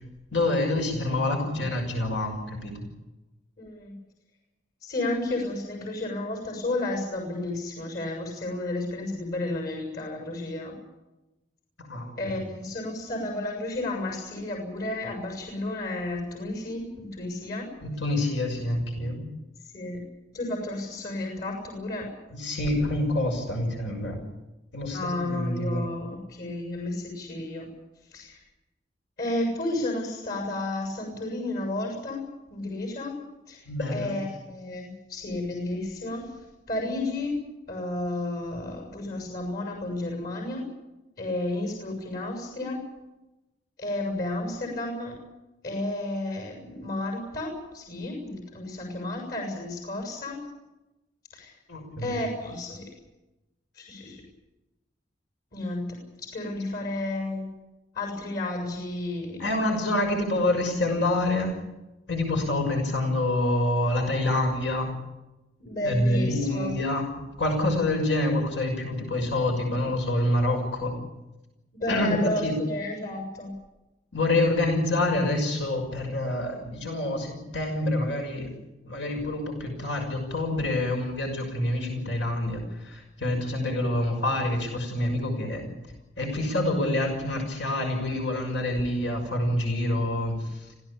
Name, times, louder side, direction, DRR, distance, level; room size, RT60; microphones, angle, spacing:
voice 1, 0.3-2.9 11.8-12.4 17.8-19.3 22.3-24.2 24.7-25.8 33.7-34.2 51.7-52.2 59.4-61.6 62.1-65.0 65.8-67.1 67.4-70.9 71.9-72.6 74.1-78.5 78.8-85.7 86.2-90.6, left 1 dB, 80° left, 3 dB, 6.3 m, -27 dB
voice 2, 3.6-3.9 4.8-10.8 12.2-17.7 19.6-20.0 20.3-22.1 24.9-27.7 28.1-28.4 29.2-32.2 32.5-33.1 33.5-36.3 36.7-37.4 37.7-40.6 41.2-42.8 43.8-45.1 45.6-50.4 51.3-51.5 52.0-52.9 53.8-54.2 55.5-57.5 57.9-59.6 65.6-66.8 71.7-73.5, left 2 dB, 55° left, 2 dB, 7.3 m, -32 dB
26.5 x 16.5 x 8.7 m, 1.0 s
head